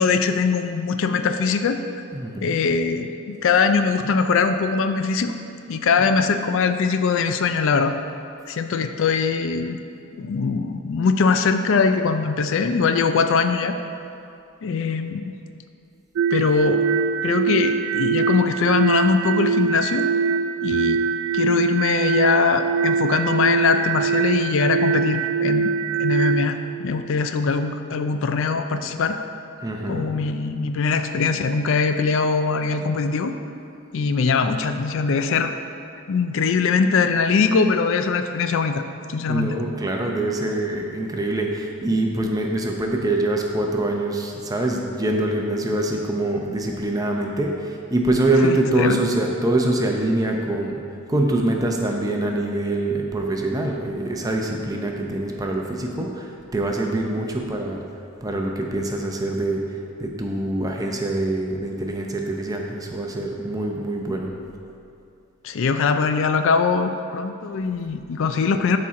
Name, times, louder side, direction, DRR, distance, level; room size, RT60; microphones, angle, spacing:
voice 1, 0.0-1.8 2.4-5.3 5.7-7.9 8.5-9.8 10.2-13.8 14.6-15.3 16.3-16.8 17.2-20.1 20.6-21.0 21.3-25.7 26.0-29.2 29.9-33.3 33.9-35.5 36.1-38.8 39.1-39.6 48.4-49.0 65.4-68.8, left 5 dB, 60° left, 8 dB, 0.4 m, -21 dB
voice 2, 2.1-2.6 5.8-6.0 28.7-28.9 29.6-30.1 39.3-50.8 51.1-57.8 58.2-59.7 60.0-64.3, right 2 dB, 15° right, 1 dB, 0.6 m, -24 dB
sound 1, 16.2-26.5, right 5 dB, 65° right, 0.3 m, -23 dB
12.5 x 4.3 x 3.7 m, 2.6 s
head